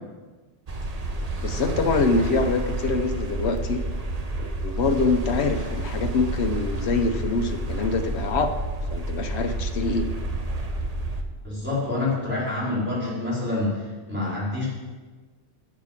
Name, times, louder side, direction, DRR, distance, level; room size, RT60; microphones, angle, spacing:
sound 1, 0.7-11.2, right 2 dB, 40° right, 1.0 m, -29 dB
voice 1, 1.4-3.8 4.4-8.6 8.9-10.1, left 3 dB, 80° left, 7 dB, 1.2 m, -25 dB
voice 2, 11.4-14.7, left 2 dB, 10° right, -8 dB, 4.6 m, -27 dB
10.5 x 7.4 x 7.4 m, 1.3 s
omnidirectional pair, 1.1 m